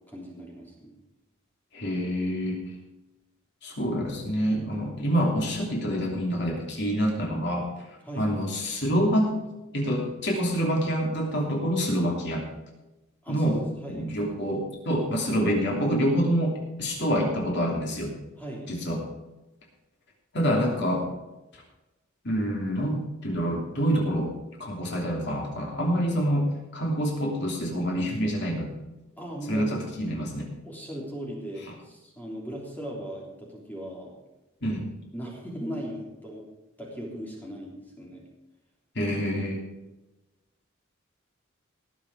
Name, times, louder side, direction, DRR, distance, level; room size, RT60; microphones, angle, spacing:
voice 1, 0.1-1.0 8.0-8.3 13.2-14.1 18.4-18.7 29.2-29.8 30.6-34.1 35.1-36.4 36.8-38.2, equal, 10° left, -3 dB, 3.3 m, -38 dB
voice 2, 1.7-2.6 3.6-7.7 8.2-9.4 9.7-12.4 13.3-13.6 13.9-18.1 18.7-19.0 20.3-21.1 21.5-21.6 22.2-24.3 24.6-28.7 29.5-30.5 34.6-34.8 38.9-39.6, equal, 55° left, -1 dB, 3.0 m, -26 dB
19.0 x 7.4 x 4.8 m, 1.0 s
head